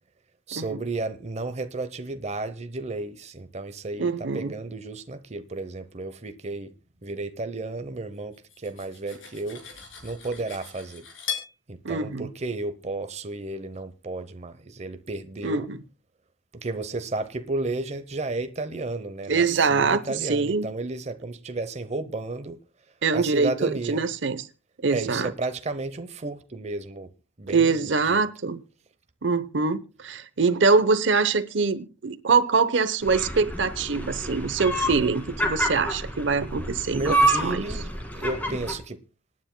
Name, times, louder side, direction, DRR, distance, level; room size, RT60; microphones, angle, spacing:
voice 1, 0.5-6.7 7.0-9.6 10.0-11.1 11.7-15.7 16.5-22.6 23.1-24.1 24.9-27.1 27.4-28.3 36.9-39.0, right 2 dB, 35° right, 0.8 m, -33 dB
voice 2, 4.0-4.5 11.8-12.3 15.4-15.8 19.3-20.7 23.0-24.4 24.8-25.3 27.5-28.6 29.2-37.6, right 4 dB, 65° right, 0.8 m, -24 dB
Cutlery silverware, 8.3-11.5, left 8 dB, 80° left, 4.7 m, -38 dB
sound 1, 33.0-38.7, right 1 dB, 10° left, 2.1 m, -28 dB
27.0 x 9.6 x 2.2 m
head